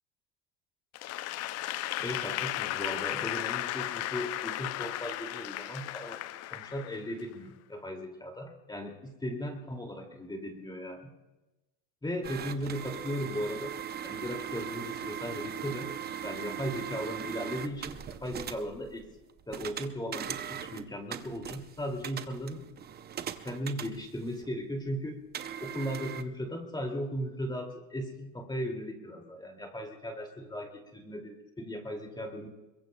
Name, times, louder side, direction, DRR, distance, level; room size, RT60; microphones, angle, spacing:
Applause / Crowd, 0.9-7.3, left 14 dB, 35° left, 0.5 m, -35 dB
voice 1, 2.0-11.1 12.0-13.7 14.0-15.9 16.2-19.1 19.5-22.6 23.4-25.2 25.6-32.5, equal, 10° left, 3 dB, 2.4 m, -37 dB
sound 1, 12.2-24.5 25.3-26.2, right 9 dB, 20° right, 0.6 m, -40 dB
25.0 x 22.0 x 2.3 m, 1.1 s
supercardioid pair, 115°, 47 cm